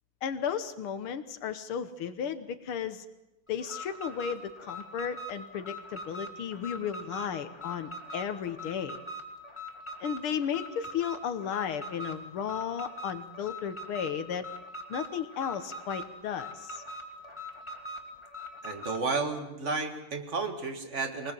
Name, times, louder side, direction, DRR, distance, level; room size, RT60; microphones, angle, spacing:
voice 1, 0.2-3.1 3.5-9.0 10.0-14.5 14.9-16.8, left 8 dB, 75° left, 10 dB, 2.0 m, -34 dB
Alarm, 3.6-19.1, equal, 15° left, 2.3 m, -42 dB
voice 2, 18.6-21.3, right 4 dB, 35° right, 7 dB, 1.9 m, -32 dB
23.0 x 19.5 x 7.6 m, 0.93 s
omnidirectional pair, 2.4 m